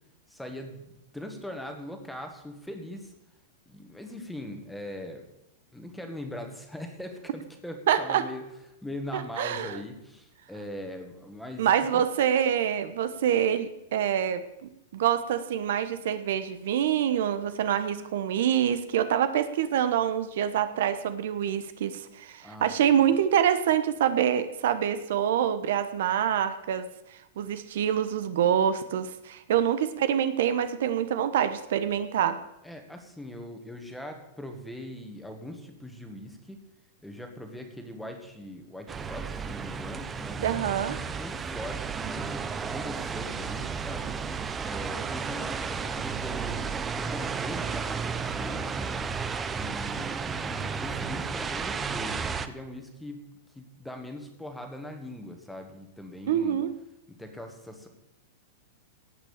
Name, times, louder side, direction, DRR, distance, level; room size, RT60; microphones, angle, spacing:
voice 1, 0.3-3.1 3.6-5.2 5.7-8.4 8.8-12.0 22.4-23.1 32.6-36.6 37.0-40.4 41.1-44.1 44.6-49.3 49.5-53.2 53.5-56.6 57.1-57.9, left 1 dB, ahead, 4 dB, 1.6 m, -41 dB
voice 2, 7.9-8.2 9.1-9.8 11.6-14.4 14.9-32.4 40.4-41.0 56.3-56.8, right 9 dB, 65° right, 11 dB, 1.0 m, -26 dB
sound 1, 38.9-52.5, right 5 dB, 15° right, 0.6 m, -33 dB
17.5 x 5.8 x 7.2 m, 0.87 s
supercardioid pair, 155°, 0 cm